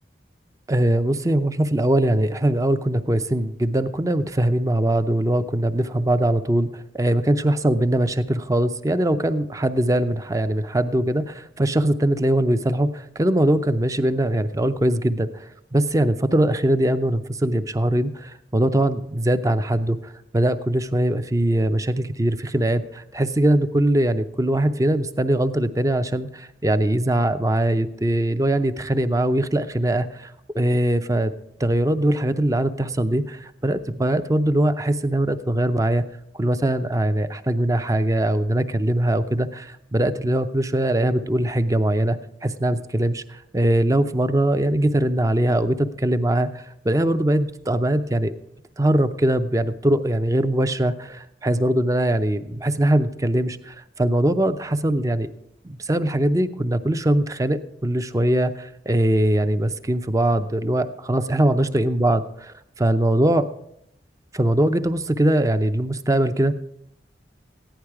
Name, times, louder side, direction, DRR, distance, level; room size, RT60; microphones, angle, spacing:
voice 1, 0.7-31.3 31.6-36.0 36.4-42.2 42.4-48.3 48.8-55.3 55.6-62.2 62.8-63.4 64.3-66.6, right 1 dB, 20° right, 10 dB, 0.5 m, -21 dB
15.0 x 10.5 x 4.7 m, 0.78 s
head